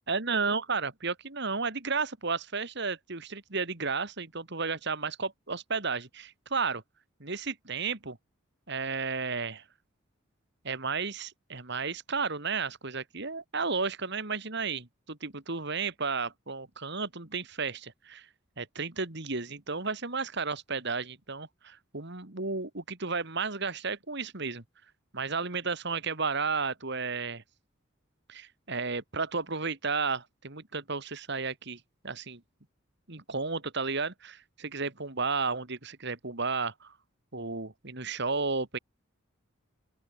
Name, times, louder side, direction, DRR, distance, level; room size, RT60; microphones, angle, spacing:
voice 1, 0.1-6.8 7.2-8.2 8.7-9.6 10.6-18.3 18.6-24.6 25.1-27.4 28.3-32.4 33.1-37.0 37.3-38.8, right 4 dB, 55° right, 2.5 m, -33 dB
open air
head